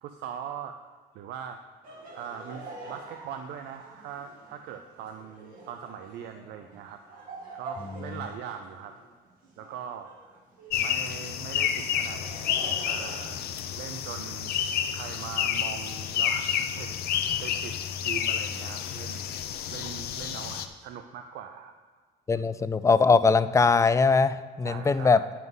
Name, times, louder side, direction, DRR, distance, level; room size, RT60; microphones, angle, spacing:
voice 1, 0.0-0.8 1.1-1.6 2.1-7.0 7.5-8.9 9.6-10.4 10.8-12.2 12.8-13.5 13.8-14.6 14.9-19.3 19.7-21.7 22.3-22.4 24.6-25.3, right 8 dB, 85° right, 7 dB, 0.6 m, -41 dB
Laughter, 1.8-10.9 11.8-14.1, right 3 dB, 55° right, 2.2 m, -46 dB
sound 1, 10.7-20.7, left 9 dB, 65° left, 0.7 m, -30 dB
voice 2, 22.3-25.2, left 4 dB, 20° left, 14 dB, 0.3 m, -21 dB
9.4 x 5.8 x 5.5 m, 1.5 s
cardioid pair, 110°, 17 cm